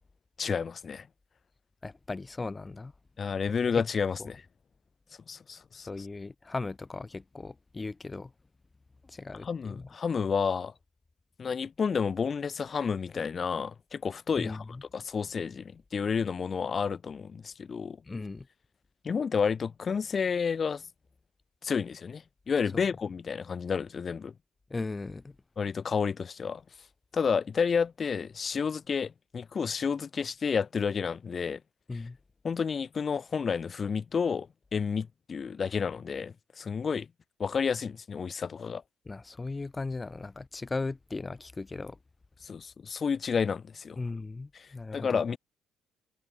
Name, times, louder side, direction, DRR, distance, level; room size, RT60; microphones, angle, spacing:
voice 1, 0.4-1.1 3.2-4.4 5.3-5.9 9.4-10.7 11.4-14.6 14.9-18.0 19.0-20.8 21.6-24.3 25.6-26.6 27.1-31.6 32.4-37.1 37.4-38.8 42.4-44.0 44.6-45.4, left 6 dB, 45° left, 2.0 m, -30 dB
voice 2, 1.8-2.9 3.7-3.8 5.9-8.3 9.0-9.9 14.4-14.8 18.0-18.5 22.7-22.8 24.7-25.4 31.9-32.2 39.1-42.0 44.0-45.2, left 3 dB, 25° left, 2.8 m, -37 dB
supercardioid pair, 60°, 0 cm